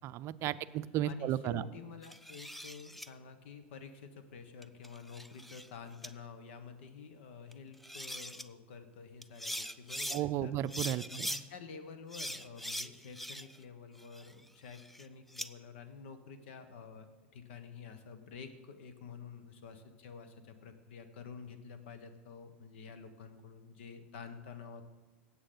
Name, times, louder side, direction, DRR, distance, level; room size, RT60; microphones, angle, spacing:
voice 1, 0.0-1.6 10.1-11.3, right 12 dB, 45° right, 14 dB, 0.5 m, -34 dB
voice 2, 1.1-10.6 11.1-17.1 17.3-24.8, left 5 dB, 70° left, 9 dB, 1.3 m, -49 dB
sound 1, 2.0-3.1 4.6-5.7 6.0-6.1 7.5-7.6 7.8-8.4 9.2-10.2 10.7-11.4 12.1-13.6 14.0-15.5, equal, ahead, 0.5 m, -41 dB
17.0 x 8.1 x 3.9 m, 1.2 s
hypercardioid pair, 100°, 6 cm